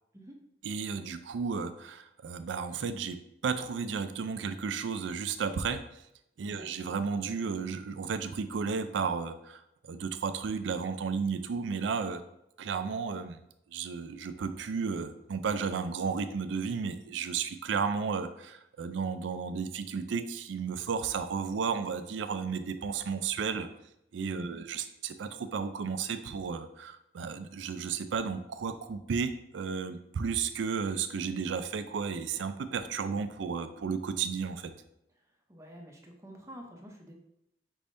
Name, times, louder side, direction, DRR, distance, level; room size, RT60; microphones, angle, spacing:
voice 1, 0.6-3.2 3.4-5.8 6.4-12.2 12.6-13.4 13.7-23.7 24.1-34.7, right 5 dB, 80° right, 10 dB, 0.4 m, -33 dB
voice 2, 6.4-6.7 24.3-24.6 35.5-37.1, equal, 15° right, 1 dB, 0.6 m, -48 dB
5.3 x 3.4 x 2.6 m, 0.81 s
head